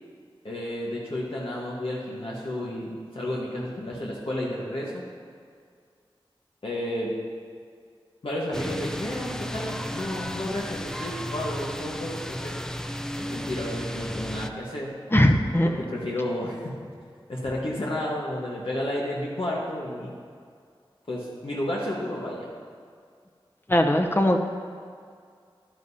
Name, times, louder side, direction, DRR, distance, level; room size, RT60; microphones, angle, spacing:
voice 1, 0.4-5.0 6.6-7.1 8.2-12.6 13.1-14.9 15.6-16.8 17.3-20.1 21.1-22.5, left 1 dB, 75° left, -5 dB, 1.3 m, -31 dB
sound 1, 8.5-14.5, equal, 5° left, 0.4 m, -34 dB
voice 2, 15.1-15.7 23.7-24.4, left 1 dB, 25° left, 4 dB, 0.8 m, -20 dB
11.5 x 10.5 x 2.8 m, 2.2 s
wide cardioid pair, 50°, 9 cm